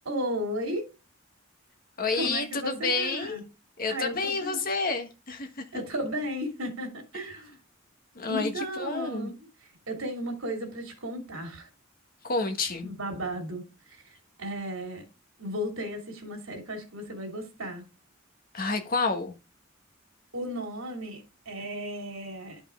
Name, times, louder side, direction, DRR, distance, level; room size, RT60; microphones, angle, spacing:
voice 1, 0.0-0.9 2.1-3.4 3.9-4.6 5.7-7.6 8.3-9.3 9.6-11.7 12.8-15.0 15.4-17.9 20.3-22.6, equal, 75° right, 2.7 m, -35 dB
voice 2, 2.0-3.4 3.8-5.6 8.1-9.3 12.2-12.9 18.5-19.3, left 3 dB, 45° left, 1.4 m, -29 dB
11.0 x 5.3 x 3.7 m
head